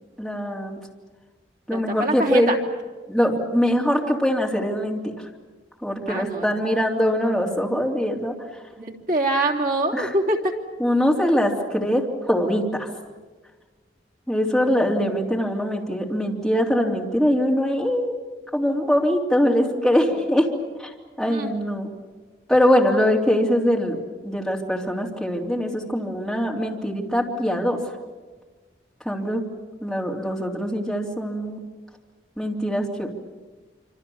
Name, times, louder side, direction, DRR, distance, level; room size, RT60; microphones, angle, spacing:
voice 1, 0.2-0.8 1.7-2.5 3.1-5.3 5.8-8.6 9.9-10.1 10.8-12.9 14.3-18.1 18.5-20.5 20.8-21.9 22.5-27.8 29.0-29.4 29.8-31.6 32.4-33.1, equal, ahead, -2 dB, 3.2 m, -22 dB
voice 2, 1.7-2.6 6.1-6.5 8.8-10.5 21.2-21.5, right 2 dB, 45° right, 1 dB, 3.2 m, -24 dB
26.5 x 26.0 x 7.1 m, 1.3 s
head